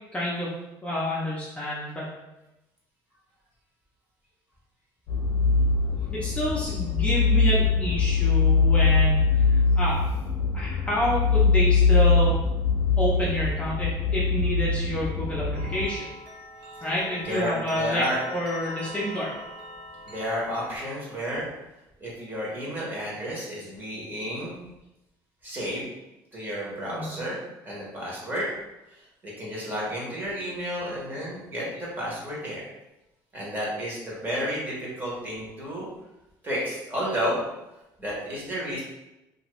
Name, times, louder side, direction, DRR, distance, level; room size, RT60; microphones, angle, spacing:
voice 1, 0.1-0.5 0.8-2.2 6.1-10.0 10.5-12.4 13.0-16.1 16.8-18.0 18.3-19.3 26.9-27.2, left 1 dB, 15° left, -7 dB, 0.6 m, -29 dB
sound 1, 5.1-15.9, left 4 dB, 90° left, 0.5 m, -22 dB
sound 2, 15.5-20.8, left 1 dB, 70° right, 0.9 m, -41 dB
voice 2, 17.2-18.2 20.1-21.5 22.0-24.6 25.4-25.9 26.3-27.4 27.6-28.5 28.9-29.0 29.2-32.6 33.3-35.9 36.4-37.4 38.0-38.8, equal, 25° right, -5 dB, 1.1 m, -31 dB
2.7 x 2.5 x 3.1 m, 0.95 s
cardioid pair, 130°, 8 cm